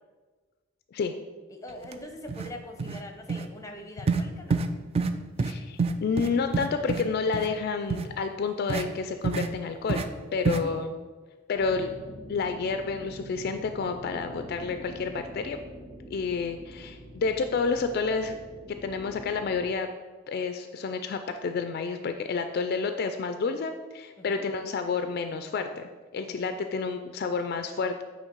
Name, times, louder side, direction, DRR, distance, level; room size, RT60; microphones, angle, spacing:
voice 1, 1.5-4.6 10.3-10.9 24.2-24.4 26.3-26.6, left 1 dB, 15° left, 4 dB, 0.6 m, -43 dB
sound 1, 1.8-1.9 2.3-2.5 2.8-3.0 3.3-3.5 4.1-4.2 4.5-4.7 5.0-5.1 5.4-5.5 5.8-7.0 7.3-7.5 7.9-8.1 8.7-8.8 9.2-9.5 9.9-10.1 10.4-10.6, right 4 dB, 30° right, 0.3 m, -27 dB
voice 2, 5.4-10.0 10.3-10.9 11.5-11.9 12.3-15.6 16.1-18.4 18.8-19.9 20.3-28.0, left 4 dB, 50° left, 7 dB, 0.3 m, -30 dB
sound 2, 11.5-19.6, right 1 dB, 90° right, 1.5 m, -45 dB
8.1 x 3.1 x 4.5 m, 1.3 s
head